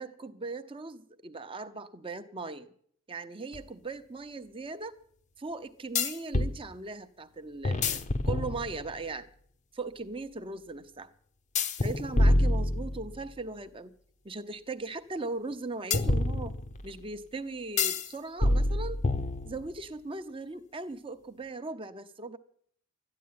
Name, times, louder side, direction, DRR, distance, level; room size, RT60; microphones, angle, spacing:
voice 1, 0.0-2.7 3.1-5.0 5.4-9.3 9.7-11.1 11.8-13.9 14.2-16.6 16.8-19.0 19.4-22.4, right 3 dB, 25° right, 10 dB, 0.8 m, -39 dB
sound 1, 3.5-3.6 6.0-6.6 7.6-9.0 11.6-13.3 15.9-16.9 17.8-18.1 18.4-19.8, left 2 dB, 35° left, 0.8 m, -27 dB
13.0 x 10.5 x 9.4 m, 0.62 s
head